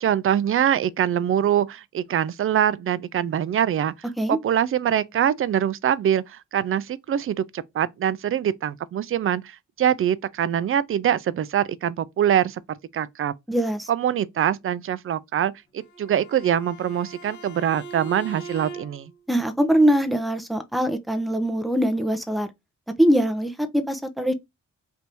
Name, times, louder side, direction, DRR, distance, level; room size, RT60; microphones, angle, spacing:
voice 1, 0.0-3.9 4.3-12.6 12.9-13.3 13.9-19.1, right 10 dB, 50° right, 0.4 m, -24 dB
voice 2, 13.5-13.9 19.3-22.5 23.0-24.3, equal, ahead, 0.6 m, -22 dB
Bowed string instrument, 15.8-19.2, right 3 dB, 80° left, 1.4 m, -41 dB
3.4 x 2.6 x 4.4 m
cardioid pair, 95°, 29 cm